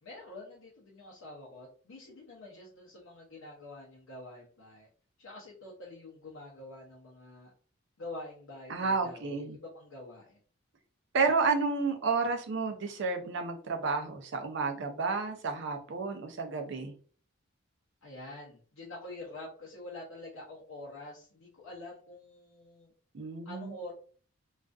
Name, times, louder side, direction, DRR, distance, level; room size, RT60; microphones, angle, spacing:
voice 1, 0.0-4.9 5.2-7.5 8.0-10.4 18.0-22.9 23.4-23.9, left 2 dB, 80° left, -4 dB, 0.6 m, -46 dB
voice 2, 8.7-9.6 11.1-16.9 23.1-23.7, right 4 dB, 55° right, 5 dB, 0.5 m, -31 dB
2.5 x 2.3 x 2.3 m, 0.43 s
head